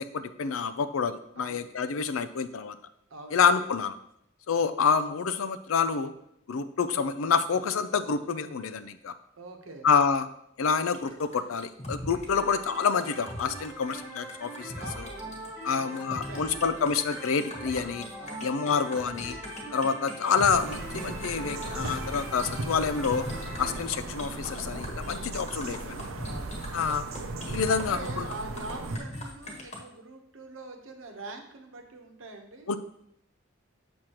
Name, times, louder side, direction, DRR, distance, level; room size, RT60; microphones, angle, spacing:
voice 1, 0.0-2.7 3.3-3.9 4.5-6.1 6.5-9.1 9.8-10.3 10.6-14.7 15.0-15.1 15.6-18.1 18.4-19.4 19.7-23.3 23.6-26.0 26.7-27.0 27.5-28.3 32.7-32.8, left 6 dB, 85° left, 11 dB, 0.5 m, -27 dB
voice 2, 1.4-1.7 3.1-3.4 9.4-9.9 14.8-16.9 18.2-18.5 26.3-26.6 27.7-32.7, right 2 dB, 70° right, 4 dB, 1.0 m, -44 dB
sound 1, 10.9-29.8, left 1 dB, 35° left, 1.3 m, -41 dB
sound 2, 12.3-23.8, right 1 dB, 10° right, 1.4 m, -43 dB
sound 3, 20.5-29.0, right 2 dB, 85° right, 0.7 m, -37 dB
7.3 x 6.4 x 3.0 m, 0.74 s
head